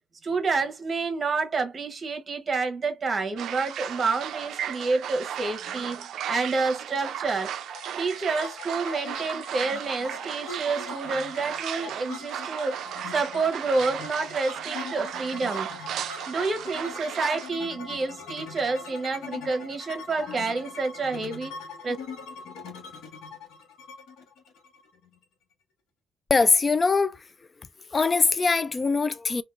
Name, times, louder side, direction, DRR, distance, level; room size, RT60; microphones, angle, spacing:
voice 1, 0.2-7.5 8.0-15.7 16.3-21.5 21.8-22.0, right 4 dB, 40° right, 0.9 m, -29 dB
sound 1, 3.4-17.5, right 9 dB, 75° right, 0.3 m, -35 dB
sound 2, 7.5-25.2, left 4 dB, 85° left, 0.9 m, -41 dB
voice 2, 26.3-27.2 27.9-29.4, left 4 dB, 30° left, 0.3 m, -22 dB
3.6 x 2.3 x 2.4 m
cardioid pair, 90°, 0 cm